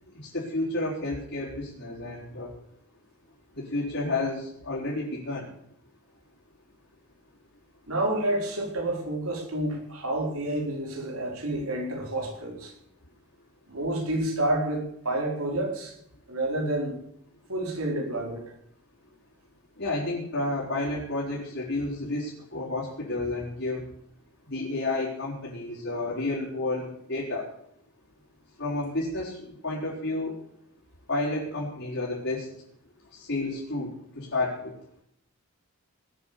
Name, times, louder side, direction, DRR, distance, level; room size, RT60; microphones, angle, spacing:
voice 1, 0.1-2.5 3.5-5.5 19.8-23.8 24.5-27.5 28.6-30.3 31.1-32.5 33.1-33.9 34.1-34.7, left 2 dB, 55° left, -7 dB, 4.7 m, -31 dB
voice 2, 7.9-12.7 13.7-15.9 16.3-17.0 17.5-18.4, right 1 dB, 70° right, 1 dB, 4.3 m, -29 dB
19.5 x 8.8 x 6.9 m, 0.71 s
head